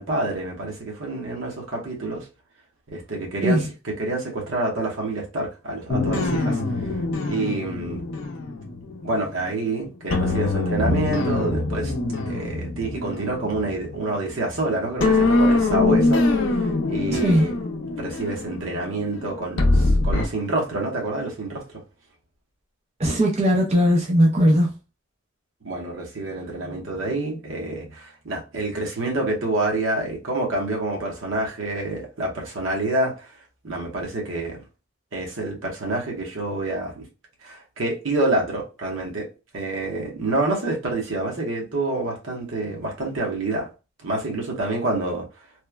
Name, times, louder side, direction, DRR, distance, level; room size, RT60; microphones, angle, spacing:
voice 1, 0.0-2.3 2.9-3.6 4.0-6.9 7.3-8.0 9.0-11.9 12.3-16.2 16.5-17.5 18.0-21.8 25.6-33.3 33.6-34.6 35.1-37.0 37.4-39.3 39.5-43.7 44.0-45.2, right 2 dB, 75° right, 0.9 m, -27 dB
sound 1, 5.9-9.6 10.1-14.6 15.0-20.3, left 2 dB, 75° left, 0.5 m, -23 dB
voice 2, 17.1-17.5 23.0-24.7, equal, 30° right, 0.4 m, -19 dB
3.0 x 2.1 x 2.2 m
head